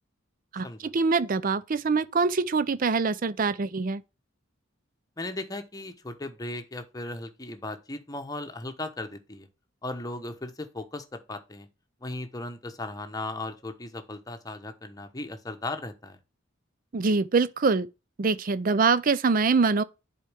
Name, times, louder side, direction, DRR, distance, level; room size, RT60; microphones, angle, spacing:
voice 1, 0.5-4.0 16.9-17.9 18.2-19.8, right 4 dB, 45° right, 0.5 m, -24 dB
voice 2, 5.2-9.5 9.8-11.7 12.0-16.2, left 2 dB, 20° left, 1.0 m, -37 dB
10.0 x 4.4 x 3.4 m
head